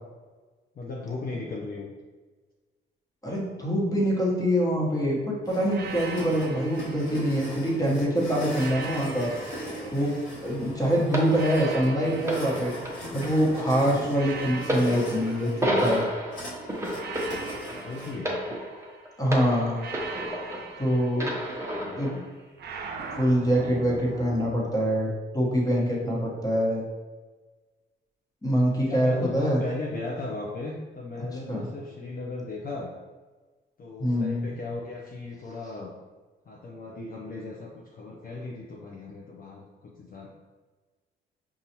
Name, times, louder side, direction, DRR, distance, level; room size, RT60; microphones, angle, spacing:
voice 1, 0.8-1.9 10.6-11.4 13.9-14.2 17.4-18.6 21.0-22.2 28.9-32.9 33.8-35.9 36.5-40.3, left 3 dB, 45° left, -2 dB, 0.6 m, -37 dB
voice 2, 3.2-9.3 9.9-12.7 13.1-16.0 19.2-19.8 20.8-21.4 22.0-22.2 23.1-26.8 28.4-29.6 31.2-31.7 34.0-34.5, equal, 20° left, -3 dB, 1.1 m, -25 dB
sound 1, 5.4-18.1, equal, 85° left, 1.3 m, -39 dB
sound 2, 5.7-7.8 8.5-10.6 11.3-13.5 14.1-16.3 16.9-19.1 19.8-21.9 22.6-24.6, right 4 dB, 55° right, 0.5 m, -41 dB
sound 3, 11.1-20.8 21.2-22.2 23.0-23.1, equal, 15° right, 0.8 m, -32 dB
5.4 x 2.4 x 2.9 m, 1.3 s
cardioid pair, 90°, 20 cm